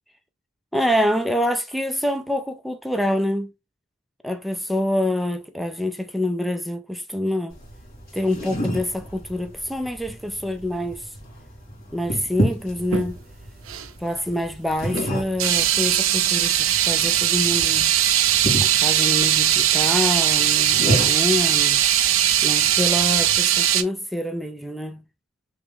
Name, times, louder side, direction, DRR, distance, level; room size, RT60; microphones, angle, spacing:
voice 1, 0.7-3.5 4.2-7.6 8.1-11.1 11.9-13.2 14.0-17.9 18.6-21.8 22.4-25.0, left 1 dB, ahead, 0.3 m, -26 dB
sound 1, 7.5-23.4, equal, 50° left, 2.1 m, -31 dB
sound 2, 12.8-13.1 13.7-13.9 14.9-15.0 15.4-23.8, right 11 dB, 65° right, 0.5 m, -20 dB
3.3 x 3.0 x 3.4 m
head